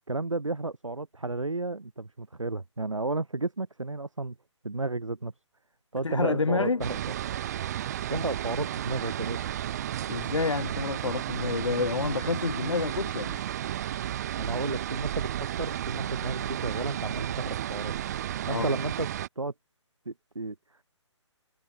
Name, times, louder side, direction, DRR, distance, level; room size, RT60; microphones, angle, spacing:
voice 1, 0.1-4.4 4.6-5.3 5.9-7.0 8.1-9.4 14.4-15.3 15.6-17.9 18.5-19.1 19.4-19.5 20.1-20.8, right 3 dB, 85° right, 5.2 m, -32 dB
voice 2, 6.0-6.8 10.1-13.4 18.4-18.7, left 4 dB, 75° left, 2.2 m, -29 dB
sound 1, 6.8-19.3, right 11 dB, 35° right, 0.5 m, -33 dB
figure-of-eight pair, 140°, 16 cm